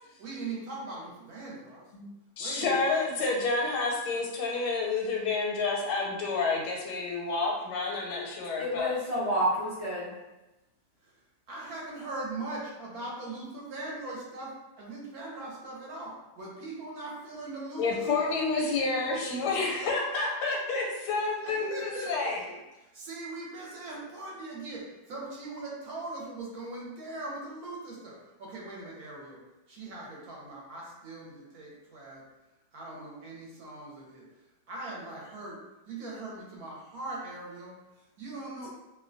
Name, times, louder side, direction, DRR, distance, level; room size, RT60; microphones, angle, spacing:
voice 1, 0.2-1.9 2.4-2.8 11.0-11.2 11.5-18.4 21.4-22.3 22.8-29.4 29.7-32.2 32.7-34.3 34.7-35.6 35.9-38.7, right 2 dB, 70° right, -4 dB, 1.1 m, -40 dB
voice 2, 2.4-8.9 17.8-22.4, left 3 dB, 85° left, -1 dB, 1.2 m, -29 dB
voice 3, 8.5-10.1, equal, 40° right, -11 dB, 0.5 m, -29 dB
2.7 x 2.2 x 2.5 m, 1.0 s
omnidirectional pair, 1.8 m